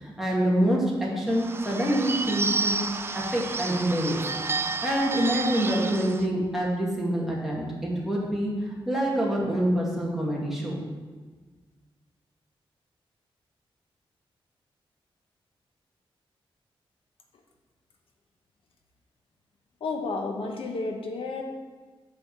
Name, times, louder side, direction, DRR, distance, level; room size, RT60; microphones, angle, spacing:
voice 1, 0.0-2.8 3.1-4.2 4.6-10.8, right 1 dB, 5° right, -4 dB, 2.0 m, -26 dB
Bird / Bell, 1.3-6.3, right 4 dB, 25° right, 0.4 m, -31 dB
voice 2, 19.8-21.4, left 3 dB, 75° left, 2 dB, 1.0 m, -31 dB
8.1 x 4.9 x 7.3 m, 1.4 s
wide cardioid pair, 165°, 10 cm